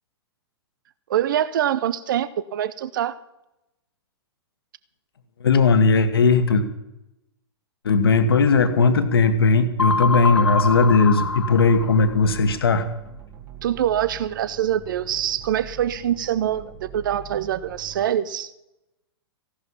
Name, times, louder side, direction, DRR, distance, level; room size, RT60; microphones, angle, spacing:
voice 1, 1.1-3.2 13.6-18.5, right 10 dB, 50° right, 17 dB, 0.8 m, -24 dB
voice 2, 5.4-6.6 7.8-12.9, left 4 dB, 60° left, 9 dB, 1.6 m, -18 dB
sound 1, 9.8-12.4, left 4 dB, 85° left, 0.6 m, -25 dB
sound 2, 10.6-18.1, right 8 dB, 30° right, 2.4 m, -42 dB
15.5 x 11.5 x 5.6 m, 0.90 s
figure-of-eight pair, 110°, 14 cm